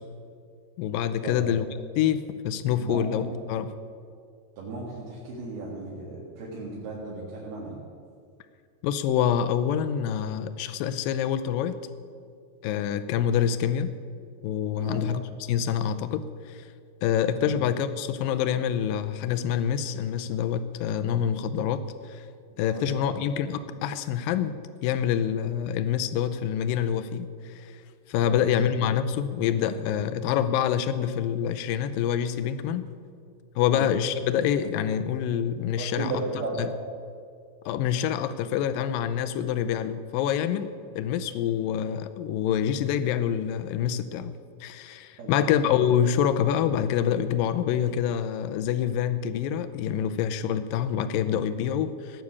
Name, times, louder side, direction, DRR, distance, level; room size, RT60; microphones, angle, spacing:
voice 1, 0.8-1.7 2.0-3.7 8.8-11.8 12.6-13.9 14.4-16.6 17.0-22.2 22.6-24.5 24.8-27.8 28.1-32.9 33.6-36.1 36.6-36.7 37.7-40.7 41.0-44.3 44.6-52.2, left 9 dB, 80° left, 11 dB, 2.2 m, -26 dB
voice 2, 2.7-3.3 4.6-7.8 14.8-15.1 17.4-17.6 22.6-23.2 28.2-28.4 33.7-33.9 35.8-36.7 45.2-45.5, right 3 dB, 80° right, -6 dB, 4.0 m, -35 dB
18.5 x 6.4 x 8.4 m, 2.2 s
omnidirectional pair, 4.5 m